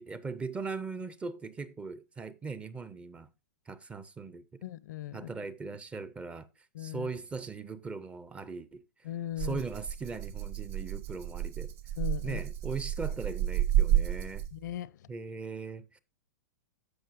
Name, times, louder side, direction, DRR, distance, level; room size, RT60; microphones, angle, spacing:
voice 1, 0.0-3.3 3.7-4.4 5.1-6.5 6.8-8.8 9.4-11.7 12.2-14.5 15.1-16.0, right 4 dB, 10° right, 0.5 m, -39 dB
voice 2, 4.6-5.3 6.7-7.1 9.0-9.6 12.0-12.4 12.7-12.8 14.5-15.1, left 13 dB, 70° left, 0.6 m, -38 dB
Rattle (instrument), 9.4-14.7, right 12 dB, 50° right, 1.3 m, -31 dB
14.0 x 5.3 x 2.5 m
hypercardioid pair, 135°, 10 cm